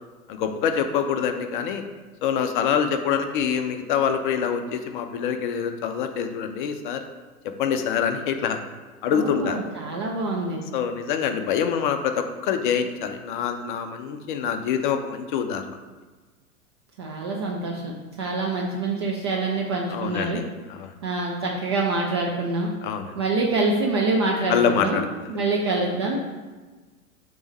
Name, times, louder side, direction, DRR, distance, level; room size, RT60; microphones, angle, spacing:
voice 1, 0.3-1.8 2.2-7.0 7.4-8.6 9.0-9.6 10.7-15.8 19.9-20.9 22.8-23.2 24.5-25.3, left 7 dB, 35° left, 7 dB, 0.5 m, -25 dB
voice 2, 9.1-10.6 17.0-17.9 18.2-20.4 21.0-22.7 23.2-25.0 25.3-26.2, right 3 dB, 20° right, -2 dB, 0.3 m, -25 dB
6.9 x 3.0 x 5.1 m, 1.3 s
figure-of-eight pair, 95°, 44 cm